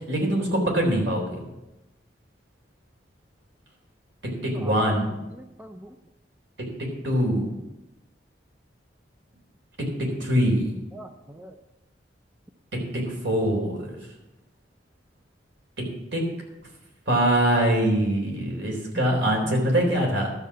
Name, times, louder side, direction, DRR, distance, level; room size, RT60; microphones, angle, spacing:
voice 1, 0.1-1.3 4.4-5.1 7.0-7.5 10.0-10.7 12.9-13.9 16.1-16.2 17.1-20.3, right 1 dB, 75° right, 0 dB, 3.8 m, -23 dB
voice 2, 4.5-5.0 5.3-6.0 10.9-11.6 18.9-19.5, right 1 dB, 10° right, 6 dB, 0.5 m, -41 dB
12.5 x 6.7 x 7.6 m, 0.97 s
head